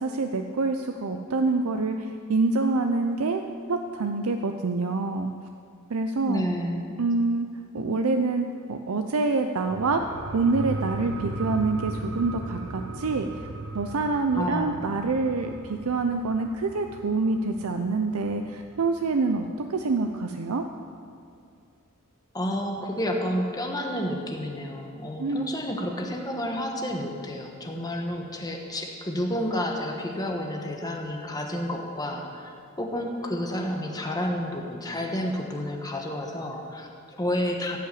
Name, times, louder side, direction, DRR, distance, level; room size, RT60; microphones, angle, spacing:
voice 1, 0.0-3.4 3.7-5.3 5.9-6.5 7.0-7.5 7.7-10.0 10.3-13.5 13.7-20.6 25.2-25.5, right 3 dB, 85° right, 6 dB, 0.6 m, -26 dB
voice 2, 6.3-6.8 14.4-14.7 22.3-37.8, left 1 dB, 20° left, 1 dB, 1.3 m, -30 dB
sound 1, 9.6-18.7 19.1-19.2, right 2 dB, 65° right, 0.9 m, -37 dB
16.0 x 5.7 x 8.5 m, 2.3 s
head